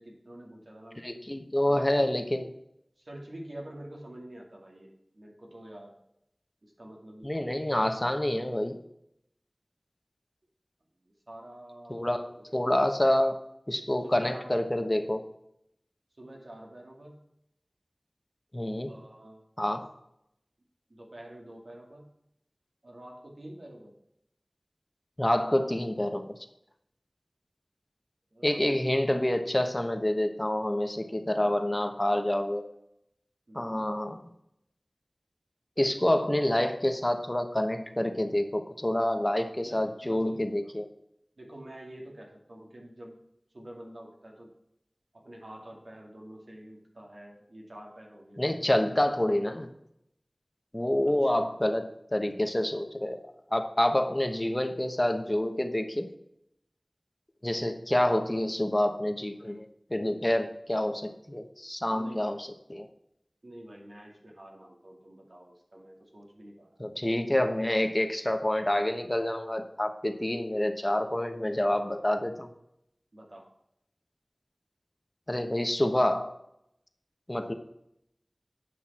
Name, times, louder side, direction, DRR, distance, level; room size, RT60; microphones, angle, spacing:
voice 1, 0.0-1.0 1.7-2.1 3.0-5.9 6.6-7.6 11.3-12.6 14.0-14.5 16.2-17.2 18.9-19.5 20.9-22.1 22.8-23.9 28.3-28.6 31.4-31.8 33.5-33.8 35.9-36.0 39.6-40.4 41.4-43.2 43.5-44.5 45.1-48.9 51.2-51.4 61.9-62.3 63.4-66.8 73.1-73.5, right 1 dB, 80° right, -1 dB, 2.4 m, -47 dB
voice 2, 1.0-2.5 7.2-8.8 11.9-13.4 13.7-15.2 18.5-18.9 19.6-19.9 25.2-26.3 28.4-32.6 33.5-34.2 35.8-40.8 48.4-49.7 50.7-53.2 53.5-56.1 57.4-62.9 66.8-72.5 75.3-76.3 77.3-77.5, left 1 dB, 30° left, 6 dB, 1.1 m, -27 dB
9.5 x 6.0 x 4.3 m, 0.78 s
wide cardioid pair, 40°, 0 cm